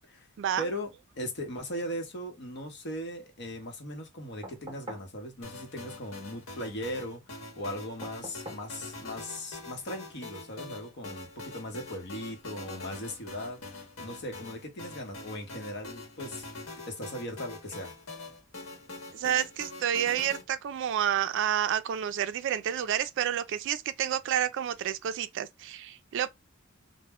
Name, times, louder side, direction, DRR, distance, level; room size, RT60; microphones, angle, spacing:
voice 1, 0.6-0.9 1.2-16.5 16.9-17.9, equal, 55° left, 0.9 m, -38 dB
sound 1, 4.4-5.1 8.0-8.7 10.3-10.4, right 1 dB, 25° right, 0.9 m, -44 dB
sound 2, 5.4-20.4, left 2 dB, 80° left, 1.0 m, -44 dB
voice 2, 19.1-26.3, right 10 dB, 60° right, 0.3 m, -29 dB
2.2 x 2.1 x 3.4 m
head